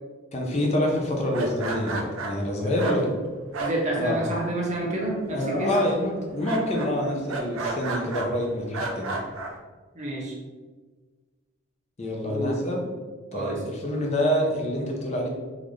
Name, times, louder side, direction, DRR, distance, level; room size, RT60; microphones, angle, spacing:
voice 1, 0.3-3.1 4.0-4.2 5.3-9.1 12.0-12.8 13.3-15.3, left 1 dB, 30° left, -1 dB, 0.6 m, -27 dB
sound 1, 1.2-4.5 4.8-5.3 5.7-8.3 8.7-9.5, right 2 dB, 80° right, 0.5 m, -33 dB
voice 2, 2.6-3.1 3.6-5.8 9.9-10.3 12.2-12.6 13.3-13.6, right 1 dB, 35° right, -3 dB, 0.7 m, -29 dB
3.8 x 2.5 x 3.1 m, 1.4 s
head